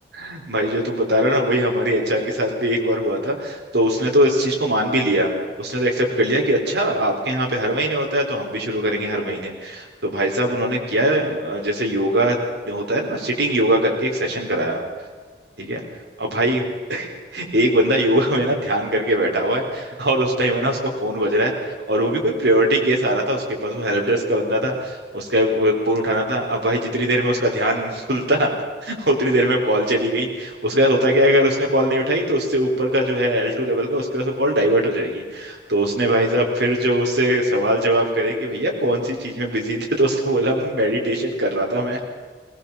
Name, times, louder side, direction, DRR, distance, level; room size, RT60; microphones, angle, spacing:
voice 1, 0.1-5.3 5.6-12.4 12.6-14.8 15.6-15.8 16.2-28.5 28.8-42.0, right 1 dB, 70° right, 1 dB, 4.2 m, -21 dB
20.0 x 19.0 x 7.2 m, 1.5 s
head